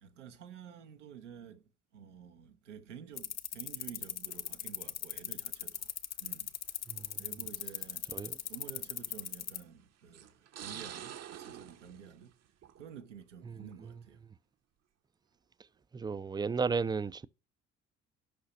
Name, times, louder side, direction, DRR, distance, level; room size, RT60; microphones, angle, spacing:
voice 1, 0.0-5.9 6.2-6.5 7.2-8.1 8.5-12.3 12.8-14.2, right 8 dB, 90° right, 0.8 m, -51 dB
sound 1, 3.2-9.6, left 10 dB, 50° left, 0.8 m, -38 dB
sound 2, 4.3-4.7 5.7-5.8 6.9-7.0 7.5-7.6 9.1-9.4 10.1-13.0 13.4-13.8, right 10 dB, 45° right, 0.8 m, -48 dB
voice 2, 13.5-13.9 15.9-17.3, right 5 dB, 10° right, 0.4 m, -34 dB
8.6 x 5.7 x 5.6 m
figure-of-eight pair, 50°, 35 cm